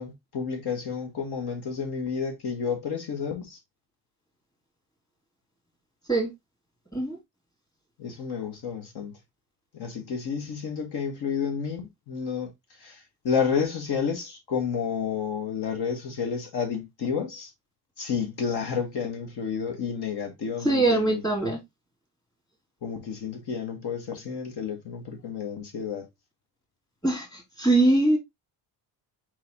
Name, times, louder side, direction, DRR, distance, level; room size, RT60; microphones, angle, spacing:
voice 1, 0.0-3.6 8.0-9.1 9.7-12.5 12.8-17.5 18.0-21.2 22.8-26.1, left 6 dB, 70° left, 1.5 m, -30 dB
voice 2, 20.6-21.6 27.0-28.2, right 2 dB, 10° left, 2.3 m, -22 dB
4.6 x 3.9 x 2.8 m
cardioid pair, 135°, 41 cm